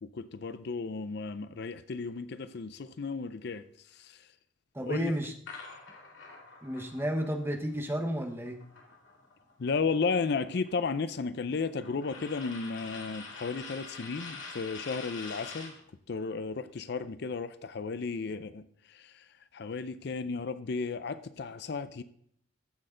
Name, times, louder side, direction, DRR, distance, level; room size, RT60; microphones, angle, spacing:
voice 1, 0.0-3.7 3.9-4.2 4.8-5.2 9.6-15.7 16.1-19.2 19.5-22.0, left 4 dB, 60° left, 0.5 m, -34 dB
voice 2, 4.7-5.3 6.6-8.6, equal, 10° right, 1.0 m, -32 dB
sound 1, 5.5-9.5 9.8-15.8, left 4 dB, 85° left, 2.4 m, -46 dB
14.0 x 6.5 x 3.8 m
head